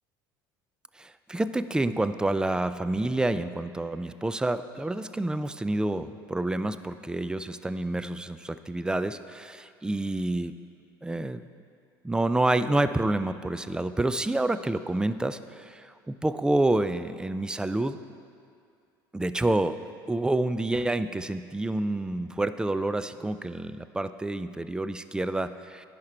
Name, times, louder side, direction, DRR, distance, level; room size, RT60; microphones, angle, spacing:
voice 1, 1.0-10.5 11.0-11.4 12.0-18.0 19.1-19.8 20.1-25.9, right 2 dB, 5° right, 12 dB, 0.3 m, -28 dB
10.5 x 5.8 x 4.4 m, 2.3 s
hypercardioid pair, 70°, 11 cm